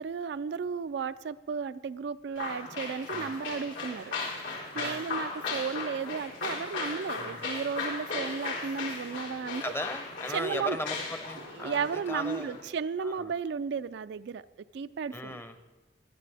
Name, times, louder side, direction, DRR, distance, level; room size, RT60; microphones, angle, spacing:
voice 1, 0.0-4.1 4.7-9.6 10.3-10.8 11.5-14.4 14.7-15.4, right 6 dB, 60° right, 13 dB, 0.3 m, -34 dB
sound 1, 2.3-12.6, left 4 dB, 85° left, 4.2 m, -37 dB
voice 2, 4.7-5.1 7.2-7.5 9.6-12.7 13.0-13.3 15.1-15.5, left 1 dB, 10° left, 9 dB, 0.7 m, -38 dB
19.0 x 11.0 x 3.4 m, 1.1 s
head